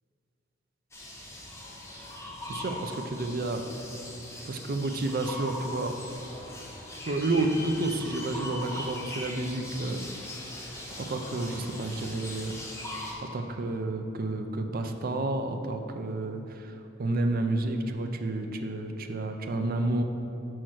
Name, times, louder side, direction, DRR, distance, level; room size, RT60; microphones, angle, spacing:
sound 1, 0.9-13.1, left 1 dB, 15° left, 0.9 m, -40 dB
voice 1, 2.5-3.6 4.4-5.9 7.1-10.0 11.0-12.6 13.3-16.7 17.0-20.0, right 2 dB, 50° right, 6 dB, 0.5 m, -30 dB
6.4 x 4.4 x 6.2 m, 2.8 s
head